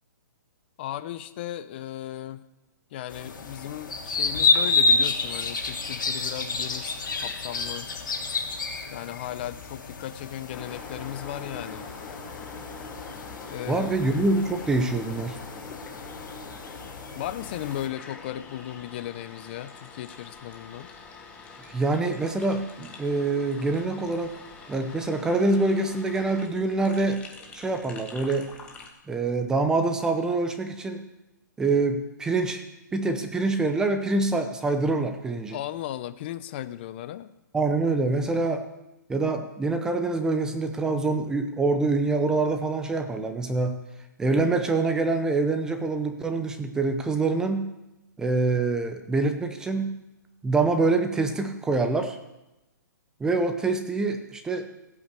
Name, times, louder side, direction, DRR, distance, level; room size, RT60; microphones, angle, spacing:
voice 1, 0.8-2.4 2.9-7.9 8.9-11.9 13.5-13.9 15.7-15.8 17.2-20.9 35.5-37.3, left 12 dB, 30° left, 12 dB, 0.6 m, -36 dB
sound 1, 3.1-17.9, left 4 dB, 85° left, 3.0 m, -30 dB
sound 2, 10.5-28.9, left 4 dB, 10° left, 1.4 m, -44 dB
voice 2, 13.7-15.4 21.6-24.4 24.7-27.2 27.5-28.5 29.1-31.0 31.6-32.6 32.9-35.6 37.5-38.6 39.1-43.8 44.2-47.7 48.2-49.9 50.4-52.2 53.2-54.7, right 3 dB, 5° right, 7 dB, 0.7 m, -25 dB
15.5 x 8.7 x 8.2 m, 0.96 s
hypercardioid pair, 165°, 11 cm